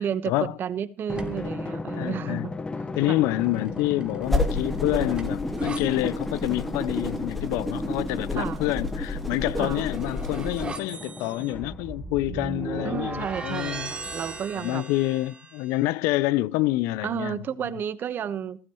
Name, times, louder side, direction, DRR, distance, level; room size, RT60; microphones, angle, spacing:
voice 1, 0.0-2.5 3.1-3.2 8.4-8.6 9.6-9.9 12.8-14.8 17.0-18.6, right 8 dB, 45° right, 1.1 m, -32 dB
Drum, 1.1-12.1, left 3 dB, 20° left, 0.9 m, -36 dB
sound 1, 1.1-1.6 3.4-5.8 9.3-15.7, right 4 dB, 20° right, 2.7 m, -38 dB
voice 2, 2.0-2.5 3.0-13.9 14.6-17.4, left 17 dB, 70° left, 0.5 m, -27 dB
sound 2, 4.2-10.7, left 2 dB, ahead, 2.8 m, -30 dB
16.0 x 14.5 x 3.1 m
supercardioid pair, 80°, 5 cm